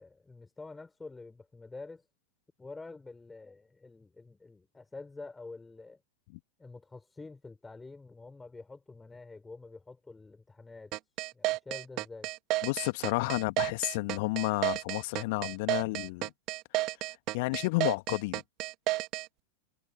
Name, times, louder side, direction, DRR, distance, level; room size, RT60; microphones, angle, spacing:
voice 1, 0.0-2.0 2.6-6.0 6.6-10.9 11.3-12.3, left 3 dB, 10° left, 7.1 m, -47 dB
sound 1, 10.9-19.3, right 19 dB, 40° right, 2.6 m, -31 dB
voice 2, 12.6-16.3 17.3-18.4, left 25 dB, 50° left, 1.9 m, -31 dB
figure-of-eight pair, 90°, 0 cm